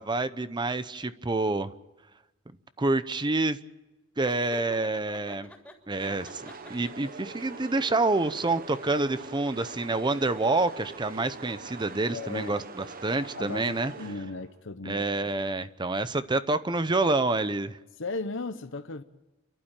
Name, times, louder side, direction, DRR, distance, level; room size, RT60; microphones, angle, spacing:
voice 1, 0.0-1.7 2.8-3.6 4.2-5.5 5.9-13.9 14.8-17.8, right 2 dB, 20° right, 0.7 m, -27 dB
Laughter, 4.3-5.8 6.2-7.1, equal, 5° left, 3.2 m, -47 dB
sound 1, 6.0-14.6, right 4 dB, 45° right, 1.2 m, -43 dB
voice 2, 12.1-12.7 13.4-15.3 18.0-19.0, left 3 dB, 65° left, 0.9 m, -36 dB
29.5 x 12.0 x 8.9 m
head